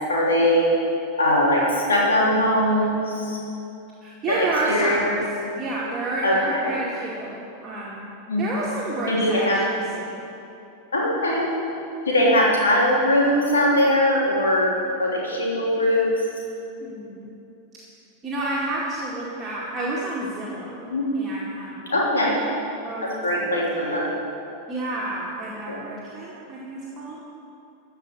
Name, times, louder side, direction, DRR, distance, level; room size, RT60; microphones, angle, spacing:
voice 1, 0.1-0.7 1.2-3.4 4.3-4.4 4.7-5.1 6.2-6.7 8.3-8.4 9.1-9.6 10.9-11.5 12.1-14.7 15.0-16.0 20.9-21.1 21.9-22.4 23.0-24.1 25.7-25.8, left 1 dB, 70° left, -4 dB, 3.3 m, -21 dB
voice 2, 4.0-5.3 5.6-8.1 8.4-10.3 16.8-17.3 18.2-20.9 21.1-22.3 22.8-24.0 24.7-27.2, right 2 dB, 20° right, -7 dB, 2.2 m, -30 dB
14.5 x 5.7 x 8.9 m, 2.9 s
figure-of-eight pair, 90°, 0 cm